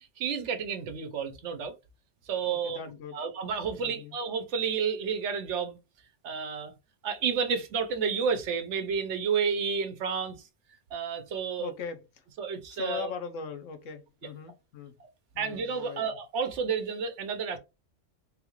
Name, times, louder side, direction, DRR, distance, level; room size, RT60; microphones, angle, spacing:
voice 1, 0.2-1.7 2.3-2.9 3.1-5.8 6.2-6.7 7.0-10.4 10.9-11.7 12.4-13.1 15.0-15.1 15.4-17.6, right 6 dB, 70° right, 1.0 m, -31 dB
voice 2, 2.5-3.2 3.8-4.2 11.6-12.2 12.7-15.0 15.3-16.1, left 6 dB, 80° left, 1.1 m, -40 dB
3.7 x 2.3 x 3.0 m
omnidirectional pair, 1.3 m